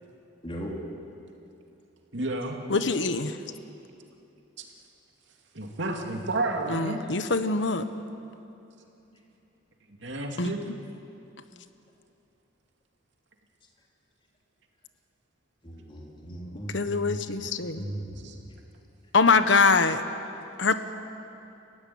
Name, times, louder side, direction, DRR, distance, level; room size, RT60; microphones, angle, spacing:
voice 1, 2.1-2.6 5.5-7.1 10.0-10.6 18.2-18.3, right 2 dB, 70° right, 2 dB, 2.8 m, -31 dB
voice 2, 2.7-3.4 6.7-7.8 10.4-10.5 16.7-17.8 19.1-20.0 20.6-20.7, left 4 dB, 75° left, 10 dB, 1.2 m, -23 dB
voice 3, 15.6-17.2 17.7-18.2, right 1 dB, 30° left, -2 dB, 3.4 m, -37 dB
30.0 x 15.5 x 9.6 m, 2.8 s
head